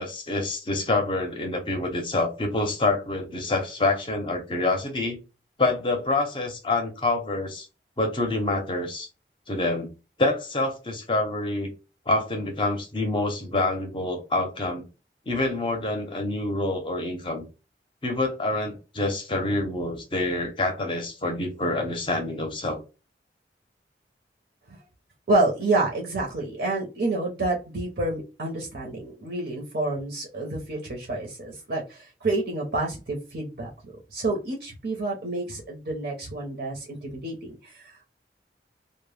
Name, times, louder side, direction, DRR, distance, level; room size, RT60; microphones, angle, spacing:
voice 1, 0.0-5.2 5.6-7.7 8.0-9.1 9.5-9.9 10.2-11.7 12.1-14.8 15.3-17.4 18.0-22.8, left 2 dB, 30° left, 0.5 m, -27 dB
voice 2, 25.3-38.1, right 2 dB, 70° right, 0.6 m, -28 dB
2.0 x 2.0 x 3.2 m
head